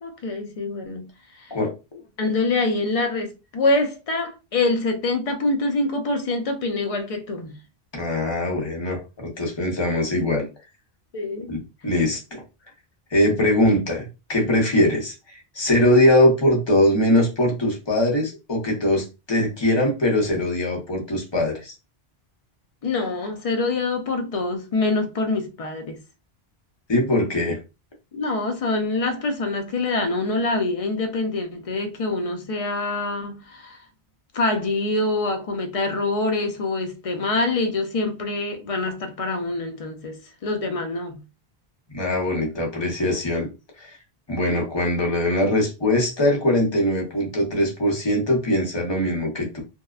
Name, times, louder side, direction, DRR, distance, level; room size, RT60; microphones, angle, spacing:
voice 1, 0.0-1.1 1.4-1.5 2.2-7.6 11.1-11.5 22.8-26.0 28.1-33.8 34.3-41.2, left 2 dB, 50° left, 0.4 m, -25 dB
voice 2, 1.5-2.0 7.9-10.5 11.5-12.4 13.1-21.7 26.9-27.6 41.9-43.5 43.8-44.0 44.3-49.6, left 1 dB, 25° left, 0.8 m, -22 dB
2.7 x 2.0 x 2.3 m
omnidirectional pair, 1.1 m